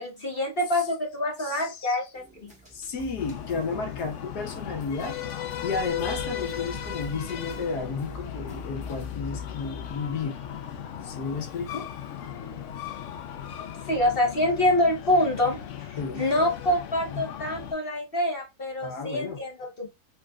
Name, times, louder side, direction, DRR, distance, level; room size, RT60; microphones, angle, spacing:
voice 1, 0.0-2.5 13.9-19.9, left 1 dB, 40° left, 1.2 m, -26 dB
voice 2, 1.4-2.0 2.7-5.2 5.6-10.4 11.0-11.9 16.0-16.2 17.1-17.2 18.8-19.4, left 4 dB, 80° left, 1.7 m, -32 dB
sound 1, 2.1-9.2, right 3 dB, 5° right, 1.5 m, -46 dB
Breathing, 3.2-17.7, left 9 dB, 60° left, 0.9 m, -37 dB
4.9 x 3.7 x 2.3 m
omnidirectional pair, 1.7 m